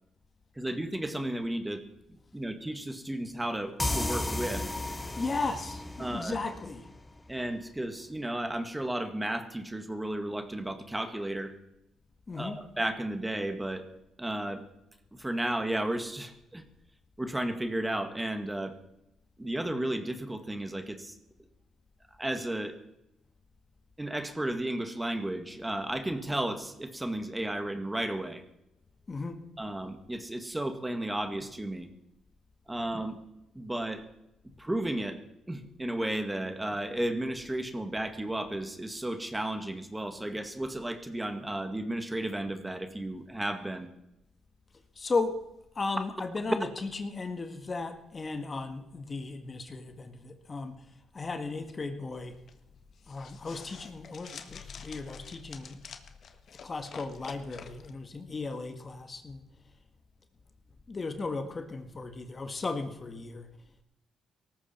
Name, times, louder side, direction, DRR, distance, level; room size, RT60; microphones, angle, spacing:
voice 1, 0.6-1.8 2.3-4.7 6.0-6.4 7.3-11.5 12.4-13.9 14.2-14.6 15.1-16.6 17.2-18.8 19.4-21.2 22.2-22.8 24.0-28.4 29.6-31.9 32.7-33.2 33.5-34.0 34.6-35.2 35.5-43.9, right 1 dB, 10° right, 7 dB, 1.9 m, -33 dB
sound 1, 3.8-7.3, left 2 dB, 15° left, 1.5 m, -34 dB
voice 2, 5.2-6.9 12.3-12.6 29.1-29.4 45.0-45.4 45.8-50.9 51.1-52.4 53.1-55.8 56.6-59.4 60.9-63.5, left 3 dB, 30° left, 7 dB, 1.8 m, -35 dB
sound 2, 52.2-57.9, left 6 dB, 55° left, 1.5 m, -48 dB
18.5 x 14.0 x 4.5 m, 0.87 s
cardioid pair, 90°, 0 cm